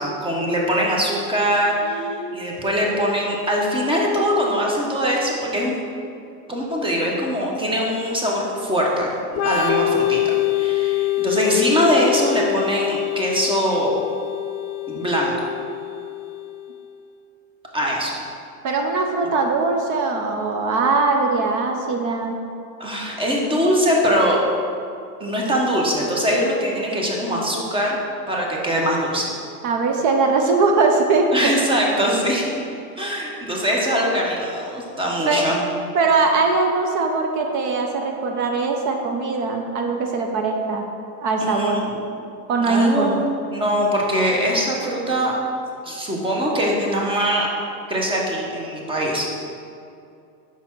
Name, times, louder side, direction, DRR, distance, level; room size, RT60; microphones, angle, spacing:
voice 1, 0.0-5.8 6.5-10.2 10.5-14.0 14.9-15.3 17.7-18.2 22.8-24.4 25.2-28.0 28.3-29.3 31.3-32.4 33.0-35.7 41.4-42.0 42.6-45.4 45.8-47.5 47.9-49.3, equal, 10° right, -2 dB, 0.9 m, -22 dB
voice 2, 1.8-2.5 18.6-22.4 29.6-31.5 35.2-35.5 35.9-40.9 41.2-41.9 42.5-43.2, right 3 dB, 40° right, 3 dB, 0.6 m, -21 dB
Organ, 9.3-16.8, left 14 dB, 35° left, 0.6 m, -24 dB
5.7 x 4.0 x 4.5 m, 2.5 s
supercardioid pair, 125°, 47 cm